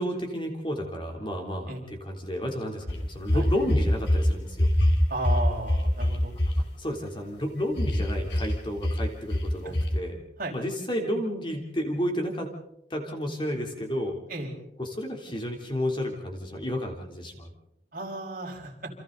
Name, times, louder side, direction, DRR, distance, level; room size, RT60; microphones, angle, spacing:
voice 1, 0.0-4.7 6.8-10.2 10.5-12.5 12.9-14.2 14.8-17.5, equal, 30° left, 2 dB, 3.4 m, -31 dB
sound 1, 2.9-4.3 4.5-6.5 7.8-8.5 8.8-9.0 9.3-9.5 9.7-9.9, left 1 dB, 80° left, 3.7 m, -24 dB
voice 2, 5.1-6.3 9.6-9.8 10.4-10.6 14.3-14.5 17.9-18.9, right 2 dB, 50° right, 0 dB, 5.6 m, -34 dB
29.5 x 27.0 x 4.0 m, 0.83 s
head